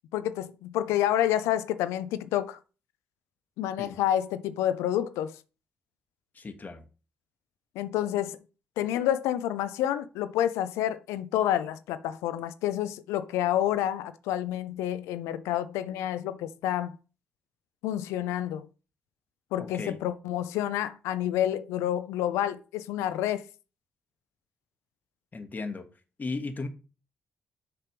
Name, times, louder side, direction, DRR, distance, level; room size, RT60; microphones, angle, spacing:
voice 1, 0.1-2.6 3.6-5.4 7.8-8.4 8.8-17.0 17.8-18.7 19.5-23.4, left 12 dB, 85° left, 0.5 m, -29 dB
voice 2, 6.3-6.8 19.6-20.0 25.3-25.8 26.2-26.7, left 3 dB, 40° left, 1.4 m, -35 dB
6.7 x 3.4 x 5.8 m
supercardioid pair, 50°, 5 cm